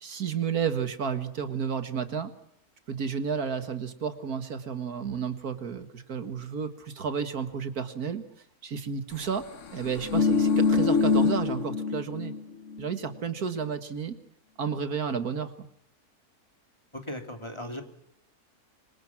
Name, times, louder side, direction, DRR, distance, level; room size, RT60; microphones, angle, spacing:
voice 1, 0.0-2.3 2.9-8.2 8.6-9.5 9.7-12.3 12.8-14.2 14.6-15.7, right 6 dB, 70° right, 9 dB, 2.2 m, -31 dB
sound 1, 9.8-12.4 12.7-12.9, left 4 dB, 55° left, 1.4 m, -24 dB
voice 2, 16.9-17.8, left 1 dB, 15° left, 5 dB, 3.1 m, -37 dB
26.5 x 24.5 x 6.0 m, 0.70 s
omnidirectional pair, 1.7 m